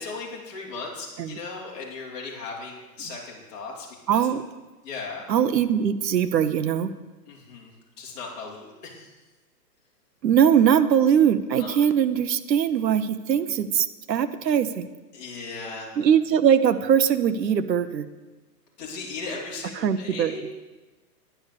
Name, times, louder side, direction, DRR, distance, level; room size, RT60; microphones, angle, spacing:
voice 1, 0.0-4.2 4.8-5.2 7.3-9.1 11.6-11.8 15.1-15.9 18.8-20.4, left 4 dB, 25° left, -3 dB, 2.8 m, -37 dB
voice 2, 4.1-4.4 5.3-6.9 10.2-14.9 16.0-18.1 19.8-20.3, right 8 dB, 90° right, 10 dB, 1.0 m, -21 dB
10.5 x 9.9 x 6.7 m, 1.2 s
hypercardioid pair, 180°, 48 cm